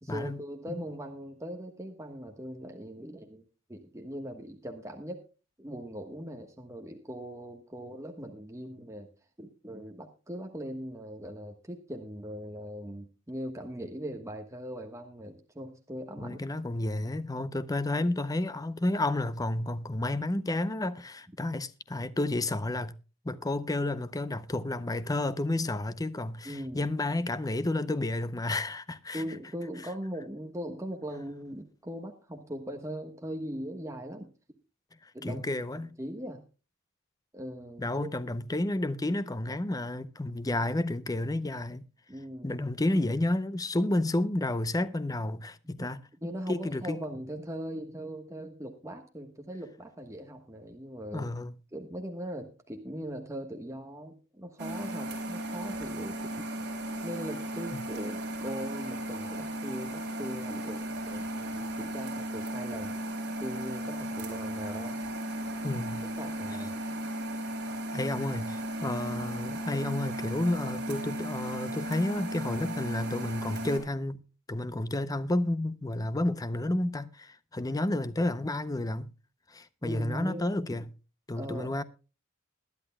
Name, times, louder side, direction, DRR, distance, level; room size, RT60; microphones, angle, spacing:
voice 1, 0.0-3.4 3.7-5.2 5.6-9.1 9.4-16.4 26.4-26.9 29.1-34.3 35.1-35.4 35.7-36.4 37.3-38.1 42.1-42.6 45.6-45.9 46.2-51.3 51.7-56.5 57.0-63.1 63.4-65.0 65.6-65.7 66.0-66.7 79.8-80.8 81.3-81.8, equal, 15° right, 1.3 m, -40 dB
voice 2, 16.2-22.9 23.2-29.2 35.0-35.9 37.8-41.8 42.4-46.0 46.5-47.0 51.1-51.5 65.6-66.1 67.9-74.2 74.5-79.1 79.5-80.9 81.3-81.8, left 1 dB, 15° left, 0.6 m, -31 dB
sound 1, 54.6-73.8, right 1 dB, 55° right, 3.8 m, -36 dB
21.0 x 11.0 x 2.2 m
head